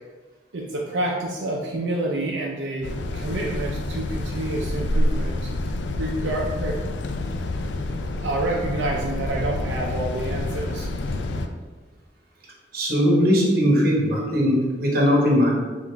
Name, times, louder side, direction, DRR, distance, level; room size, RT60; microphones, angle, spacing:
voice 1, 0.5-5.5 6.0-6.8 8.2-11.0, right 1 dB, 90° right, -2 dB, 0.5 m, -28 dB
sound 1, 2.8-11.5, left 1 dB, 80° left, 0.3 m, -28 dB
voice 2, 12.7-15.5, equal, 55° right, -3 dB, 0.9 m, -19 dB
4.8 x 2.5 x 3.3 m, 1.3 s
head